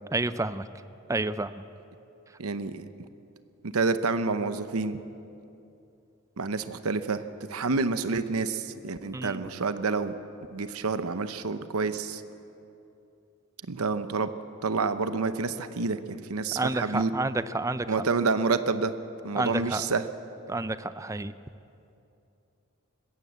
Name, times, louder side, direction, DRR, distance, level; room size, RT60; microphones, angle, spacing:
voice 1, 0.1-0.7 1.1-1.5 9.1-9.4 16.6-17.9 19.4-19.8 20.5-21.3, right 2 dB, 15° right, 13 dB, 0.4 m, -29 dB
voice 2, 2.4-2.8 3.6-5.0 6.4-7.2 7.5-10.1 10.5-12.2 13.7-14.3 14.6-17.1 17.9-18.9 19.2-20.0, right 4 dB, 85° right, 11 dB, 0.8 m, -28 dB
20.5 x 15.5 x 8.1 m, 2.8 s
head